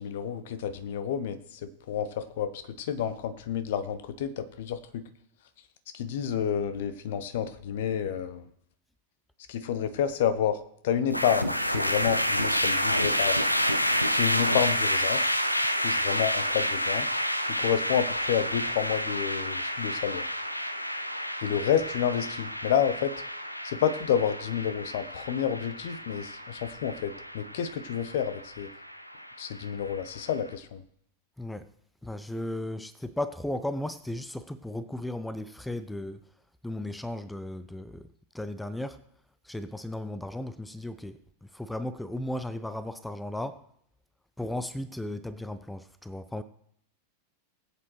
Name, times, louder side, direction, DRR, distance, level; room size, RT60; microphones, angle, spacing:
voice 1, 0.0-5.0 5.9-8.5 9.5-13.4 14.1-15.3 15.8-17.1 17.5-20.3 21.4-23.1 23.6-28.7 29.4-30.8, left 8 dB, 55° left, 0.9 m, -29 dB
sound 1, 11.1-30.3, equal, 90° left, 0.7 m, -29 dB
voice 2, 31.4-31.7 32.0-36.2 36.6-38.1 38.3-39.0 39.4-43.6 44.4-46.4, left 1 dB, 5° left, 0.5 m, -35 dB
20.5 x 8.1 x 3.2 m
figure-of-eight pair, 90°, 0 cm